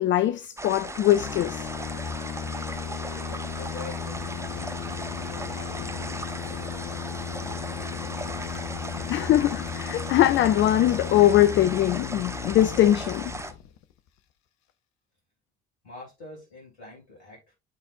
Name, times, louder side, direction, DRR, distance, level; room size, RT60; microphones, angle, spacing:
voice 1, 0.0-1.7 9.1-13.3, left 13 dB, 35° left, 0.4 m, -21 dB
sound 1, 0.6-13.5, right 2 dB, 10° right, 0.8 m, -37 dB
sound 2, 1.1-13.9, left 8 dB, 55° left, 0.8 m, -35 dB
voice 2, 3.0-4.6 5.2-7.0 7.3-7.9 15.8-17.5, left 2 dB, 80° left, 3.1 m, -46 dB
11.5 x 4.1 x 2.5 m
figure-of-eight pair, 45°, 33 cm